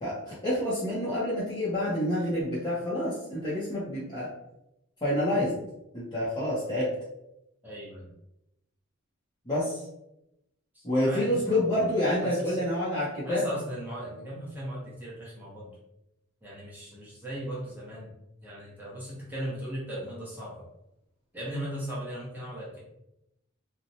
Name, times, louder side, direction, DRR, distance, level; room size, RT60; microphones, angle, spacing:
voice 1, 0.0-4.3 5.0-5.6 5.9-6.9 9.5-9.8 10.8-13.4, left 1 dB, 20° left, -10 dB, 0.6 m, -28 dB
voice 2, 7.6-8.1 10.7-11.8 12.2-12.6 13.2-15.8 16.4-18.1 18.4-20.6 21.3-22.8, equal, 10° right, -7 dB, 0.8 m, -38 dB
2.7 x 2.1 x 2.7 m, 0.86 s
head